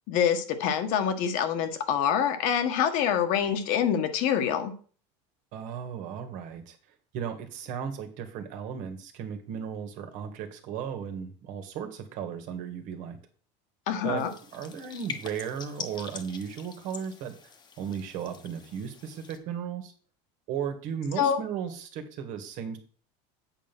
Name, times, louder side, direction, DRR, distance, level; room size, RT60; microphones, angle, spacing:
voice 1, 0.1-4.7 13.9-14.3 21.2-21.4, left 8 dB, 60° left, 7 dB, 1.5 m, -26 dB
voice 2, 5.5-6.8 7.1-13.2 14.0-14.3 14.5-19.9 20.5-22.8, right 8 dB, 55° right, 6 dB, 1.9 m, -35 dB
sound 1, 14.2-19.4, left 6 dB, 30° left, 1.3 m, -44 dB
8.4 x 5.5 x 6.1 m, 0.43 s
supercardioid pair, 145°, 15 cm